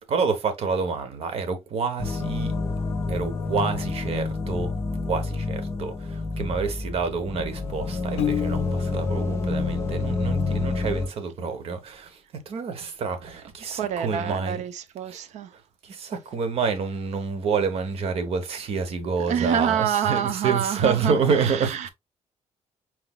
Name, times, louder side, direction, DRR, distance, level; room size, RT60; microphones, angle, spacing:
voice 1, 0.1-2.6 3.1-4.7 5.1-12.2 12.5-14.6 15.1-15.2 15.8-21.9, right 5 dB, 55° right, 1.0 m, -28 dB
sound 1, 2.0-11.1, left 3 dB, 25° left, 1.1 m, -28 dB
Piano, 8.2-9.2, left 11 dB, 55° left, 0.4 m, -29 dB
voice 2, 13.7-15.5 19.3-21.9, right 9 dB, 75° right, 0.6 m, -27 dB
4.3 x 4.0 x 2.3 m
cardioid pair, 165°, 12 cm